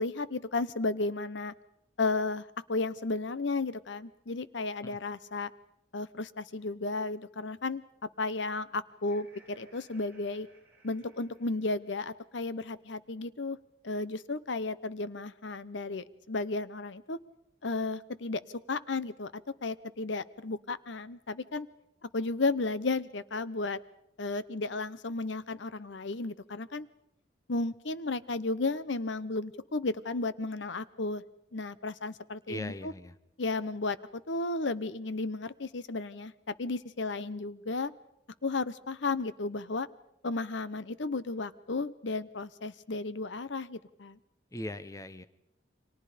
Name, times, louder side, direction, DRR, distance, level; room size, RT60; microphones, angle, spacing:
voice 1, 0.0-1.5 2.0-5.5 5.9-7.8 8.2-10.5 10.8-13.6 13.8-17.2 17.6-18.4 18.7-19.3 19.6-21.7 22.0-23.8 24.2-26.9 27.5-31.2 31.5-32.9 33.4-34.0 34.3-37.9 38.4-39.9 40.2-44.2, left 3 dB, 75° left, 16 dB, 0.9 m, -33 dB
Laughter, 8.9-12.1, right 2 dB, 10° right, 7.1 m, -62 dB
voice 2, 32.5-33.2 44.5-45.3, left 1 dB, 15° left, 13 dB, 0.8 m, -39 dB
29.5 x 24.5 x 5.1 m, 0.81 s
head